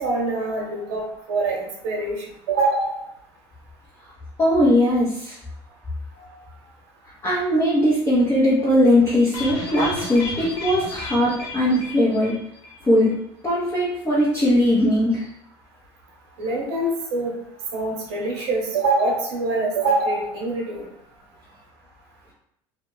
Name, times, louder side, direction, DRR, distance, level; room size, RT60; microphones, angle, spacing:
voice 1, 0.0-3.0 16.4-17.3 17.7-20.9, right 2 dB, 80° right, -2 dB, 0.9 m, -24 dB
voice 2, 4.4-5.4 7.2-12.3 12.9-13.1 13.4-15.3, left 1 dB, 20° left, -8 dB, 0.8 m, -19 dB
sound 1, 9.3-12.8 13.0-13.1 13.5-13.6, left 2 dB, 85° left, 0.9 m, -33 dB
2.5 x 2.2 x 3.1 m, 0.75 s
supercardioid pair, 90°, 13 cm